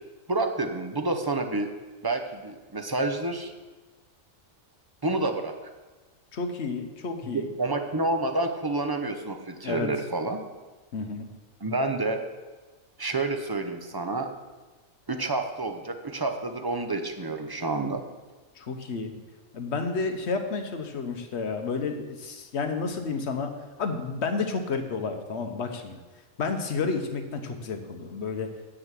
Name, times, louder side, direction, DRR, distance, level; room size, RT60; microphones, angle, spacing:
voice 1, 0.3-1.7 2.0-3.5 5.0-5.5 7.3-10.4 11.6-12.2 13.0-14.3 15.1-18.0, right 2 dB, 25° right, 5 dB, 0.5 m, -29 dB
voice 2, 6.3-7.5 9.6-9.9 10.9-11.3 18.6-19.1 19.5-23.5 23.8-26.0 26.4-28.5, left 4 dB, 55° left, 6 dB, 1.2 m, -31 dB
8.0 x 6.3 x 7.5 m, 1.2 s
omnidirectional pair, 1.4 m